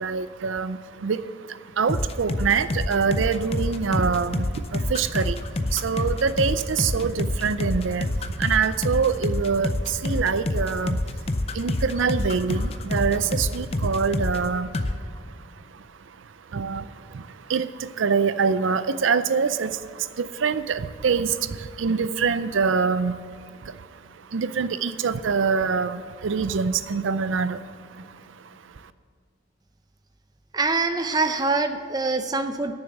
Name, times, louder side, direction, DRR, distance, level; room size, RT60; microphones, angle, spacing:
voice 1, 0.0-28.9, right 5 dB, 75° right, 13 dB, 0.5 m, -26 dB
sound 1, 1.9-14.5 14.7-14.9, left 1 dB, 30° left, 0.5 m, -27 dB
voice 2, 30.5-32.7, right 3 dB, 20° right, 8 dB, 0.5 m, -24 dB
10.0 x 7.0 x 7.8 m, 2.2 s
head